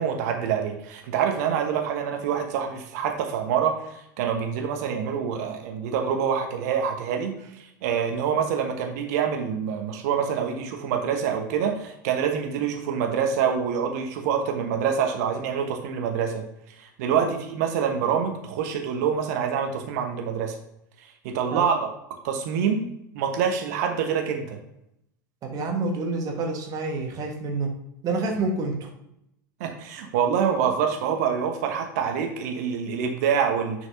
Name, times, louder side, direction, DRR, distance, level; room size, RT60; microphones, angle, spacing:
voice 1, 0.0-3.7 4.2-16.4 17.0-20.5 21.2-21.9 22.2-22.8 23.1-24.6 29.6-33.9, right 7 dB, 55° right, 4 dB, 1.2 m, -26 dB
voice 2, 25.4-27.7 28.0-28.9, right 3 dB, 35° right, 2 dB, 1.5 m, -28 dB
9.8 x 4.7 x 2.8 m, 0.79 s
figure-of-eight pair, 80°, 10 cm